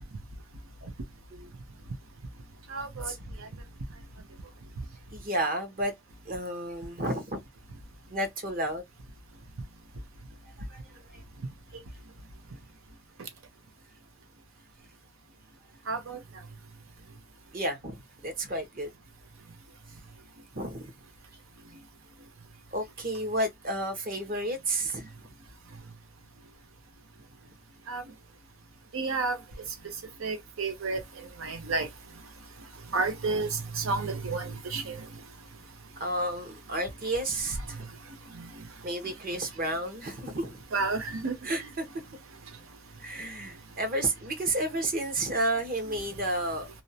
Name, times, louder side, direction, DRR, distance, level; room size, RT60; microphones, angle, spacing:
voice 1, 2.7-3.1 15.9-16.2 27.9-28.0 28.9-29.4 30.2-31.0 31.4-31.9 32.9-35.0 40.7-41.3, right 3 dB, 90° right, 0.7 m, -30 dB
voice 2, 5.1-5.9 6.2-7.4 8.1-8.8 10.7-10.8 11.1-11.2 17.5-18.0 18.2-18.9 20.5-20.9 22.7-25.1 36.0-37.8 38.8-40.6 41.4-41.9 43.0-46.7, right 1 dB, 45° right, 0.8 m, -31 dB
2.5 x 2.1 x 2.6 m
head